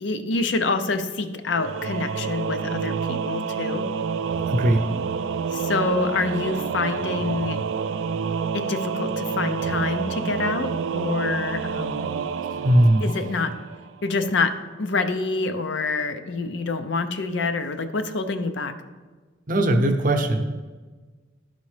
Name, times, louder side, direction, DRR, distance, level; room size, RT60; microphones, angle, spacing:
voice 1, 0.0-3.8 5.5-7.6 8.5-12.1 13.0-13.5 14.0-18.7, left 3 dB, 70° left, 9 dB, 0.5 m, -26 dB
Singing / Musical instrument, 1.5-14.0, right 6 dB, 85° right, 0.3 m, -28 dB
voice 2, 4.5-4.9 12.6-13.0 19.5-20.4, right 1 dB, 45° right, 4 dB, 0.7 m, -19 dB
11.5 x 4.0 x 3.3 m, 1.3 s
head